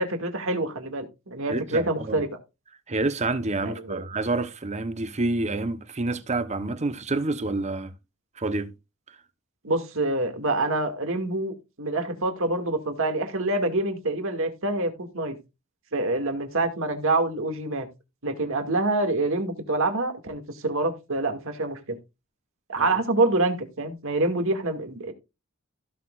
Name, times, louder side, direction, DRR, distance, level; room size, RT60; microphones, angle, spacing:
voice 1, 0.0-2.3 3.6-4.0 9.6-15.4 15.9-17.9 18.2-22.0 22.7-25.1, right 2 dB, 70° right, 2.2 m, -26 dB
voice 2, 1.5-2.2 2.9-7.9 8.4-8.7 22.8-23.0, right 2 dB, 35° right, 1.0 m, -28 dB
16.0 x 6.7 x 2.5 m
head